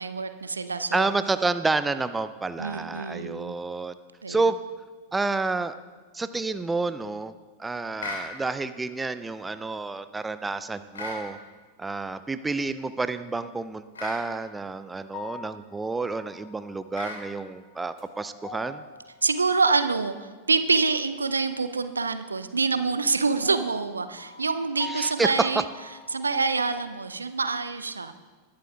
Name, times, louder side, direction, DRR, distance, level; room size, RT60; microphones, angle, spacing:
voice 1, 0.0-1.1 2.6-3.5 4.2-4.4 19.2-25.7 26.1-28.1, right 4 dB, 75° right, 11 dB, 0.6 m, -26 dB
voice 2, 0.9-3.9 4.3-4.6 5.1-5.7 6.1-7.3 7.6-11.4 11.8-18.8 24.8-25.6, right 3 dB, 10° right, 12 dB, 0.4 m, -29 dB
sound 1, 8.0-8.3 10.9-11.2 13.9-14.2 16.9-17.2, left 3 dB, 70° left, 2.3 m, -35 dB
sound 2, 14.3-14.7 15.1-16.9 17.4-20.3 22.7-26.9, left 5 dB, 35° left, 1.5 m, -45 dB
20.5 x 11.0 x 2.3 m, 1.4 s
figure-of-eight pair, 90°, 0 cm